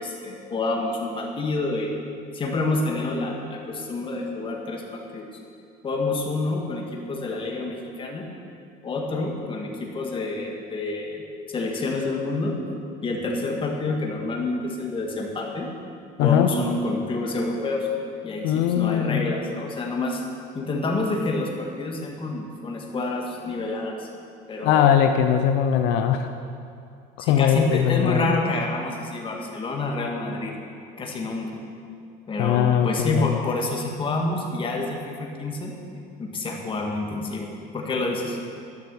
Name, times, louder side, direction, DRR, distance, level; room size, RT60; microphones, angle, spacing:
voice 1, 0.0-1.9 2.3-5.3 5.8-8.3 8.8-11.2 11.5-12.6 13.0-15.7 16.2-17.9 18.2-20.2 20.5-24.1 24.5-24.9 27.2-30.5 31.0-31.5 32.3-35.7 36.2-38.4, left 2 dB, 30° left, 1 dB, 1.8 m, -28 dB
voice 2, 18.4-19.3 24.6-26.3 27.2-28.3 32.4-33.4, left 9 dB, 80° left, 7 dB, 0.6 m, -20 dB
11.5 x 6.8 x 7.0 m, 2.4 s
cardioid pair, 120°, 17 cm